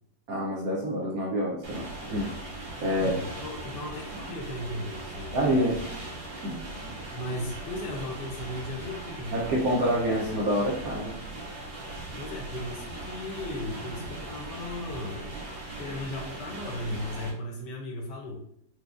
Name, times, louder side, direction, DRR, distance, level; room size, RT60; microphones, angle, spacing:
voice 1, 0.3-3.1 5.3-5.8 6.4-6.6 9.3-11.2, equal, 65° right, -3 dB, 0.9 m, -27 dB
sound 1, 1.6-17.3, right 2 dB, 85° right, 1.7 m, -39 dB
voice 2, 2.9-5.9 7.1-9.5 12.2-15.3 15.8-18.4, left 1 dB, 75° left, 1 dB, 1.2 m, -36 dB
4.5 x 2.2 x 2.4 m, 0.70 s
omnidirectional pair, 2.0 m